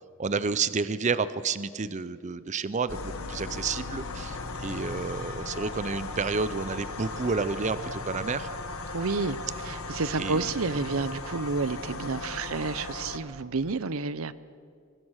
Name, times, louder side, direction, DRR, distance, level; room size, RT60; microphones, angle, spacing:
voice 1, 0.2-8.5 10.2-10.5, right 4 dB, 35° right, 15 dB, 0.5 m, -30 dB
sound 1, 2.9-13.2, left 3 dB, 85° left, 1.6 m, -37 dB
voice 2, 8.9-14.3, right 4 dB, 80° right, 16 dB, 0.7 m, -30 dB
23.5 x 19.0 x 6.4 m, 2.3 s
head